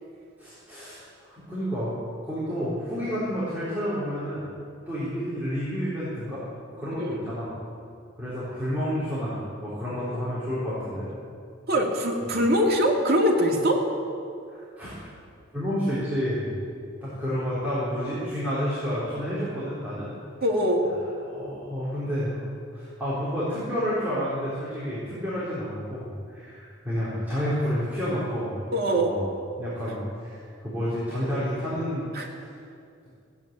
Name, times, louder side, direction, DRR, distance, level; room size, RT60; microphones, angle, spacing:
voice 1, 0.4-1.9 2.2-4.5 4.9-6.4 6.8-7.5 8.2-11.1 12.3-12.4 14.5-15.0 15.5-16.5 17.0-20.1 21.2-22.4 22.7-28.5 29.0-29.3 29.6-32.4, equal, 10° right, -12 dB, 3.9 m, -30 dB
voice 2, 6.9-7.2 11.7-13.8 20.4-20.8 28.7-29.1 32.1-32.3, equal, 50° right, -2 dB, 2.5 m, -23 dB
16.0 x 8.7 x 8.9 m, 2.4 s
head